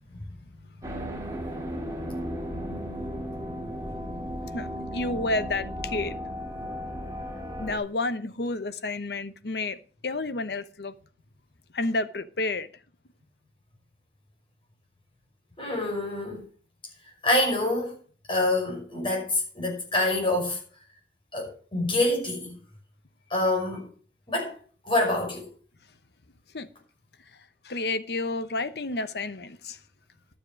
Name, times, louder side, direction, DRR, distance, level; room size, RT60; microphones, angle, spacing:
sound 1, 0.8-7.8, equal, 20° right, 3.0 m, -35 dB
voice 1, 4.5-6.2 7.6-9.8 10.0-10.9 11.7-12.7 26.5-26.7 27.6-29.8, left 2 dB, 70° left, 0.9 m, -30 dB
voice 2, 15.6-16.4 17.2-17.9 18.3-20.6 21.3-22.6 23.3-23.9 24.3-24.6 24.9-25.5, left 2 dB, 30° left, 5.7 m, -26 dB
12.0 x 7.4 x 6.3 m
head